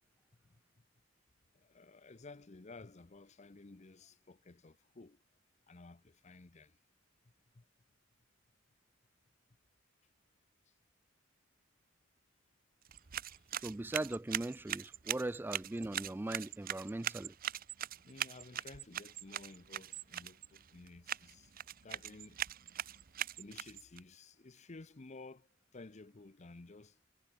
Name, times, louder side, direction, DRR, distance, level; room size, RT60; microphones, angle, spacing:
voice 1, 1.5-5.2 5.7-6.8 7.5-7.6 13.3-13.4 18.0-21.5 21.8-22.4 23.4-25.5 25.7-27.0, left 3 dB, 35° left, 0.7 m, -54 dB
sound 1, 12.8-24.0, right 10 dB, 45° right, 0.8 m, -42 dB
voice 2, 13.6-17.3, right 2 dB, 10° right, 0.3 m, -39 dB
head